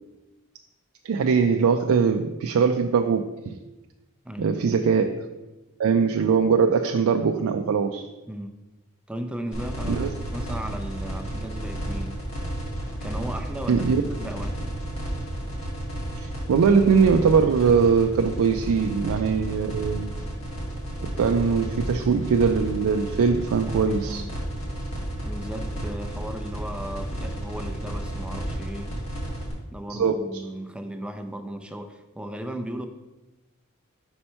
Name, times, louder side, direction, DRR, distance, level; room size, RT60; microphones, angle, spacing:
voice 1, 1.0-3.5 4.4-5.3 5.8-8.1 9.9-10.1 13.7-14.0 16.2-20.1 21.0-24.2 29.9-30.2, right 5 dB, 85° right, 5 dB, 0.4 m, -21 dB
voice 2, 4.2-4.6 8.3-8.5 9.1-12.2 12.9-13.8 14.2-14.7 24.1-24.3 25.2-29.0 29.7-32.9, right 1 dB, 5° right, 6 dB, 0.4 m, -36 dB
sound 1, 9.5-29.5, right 1 dB, 70° left, 1.9 m, -32 dB
5.5 x 4.3 x 4.4 m, 1.1 s
head